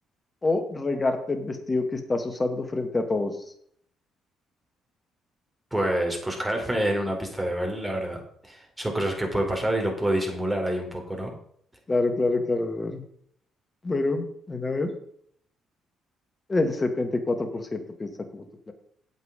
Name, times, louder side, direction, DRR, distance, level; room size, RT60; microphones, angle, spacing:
voice 1, 0.4-3.4 11.9-13.0 13.8-14.9 16.5-18.7, left 2 dB, 30° left, 6 dB, 2.1 m, -27 dB
voice 2, 5.7-11.3, right 1 dB, 15° right, 1 dB, 4.2 m, -27 dB
8.9 x 8.0 x 5.2 m, 0.65 s
hypercardioid pair, 45°, 0 cm